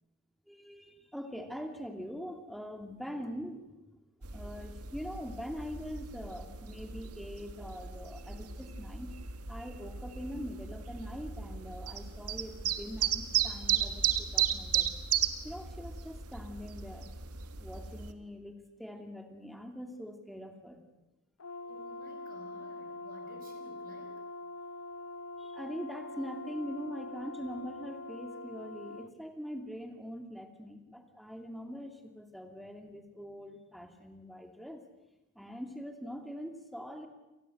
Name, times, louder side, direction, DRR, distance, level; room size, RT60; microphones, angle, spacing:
voice 1, 0.5-3.8 4.3-9.2 9.5-14.9 15.4-17.1 17.6-20.8 21.6-21.7 25.4-34.9 35.3-37.1, equal, ahead, 5 dB, 2.6 m, -43 dB
sound 1, 4.2-18.1, right 9 dB, 80° right, 1.6 m, -35 dB
Brass instrument, 21.4-29.1, left 2 dB, 65° left, 0.8 m, -44 dB
voice 2, 21.7-24.2, right 1 dB, 40° right, 4 dB, 5.5 m, -55 dB
28.0 x 19.0 x 7.9 m, 1.0 s
head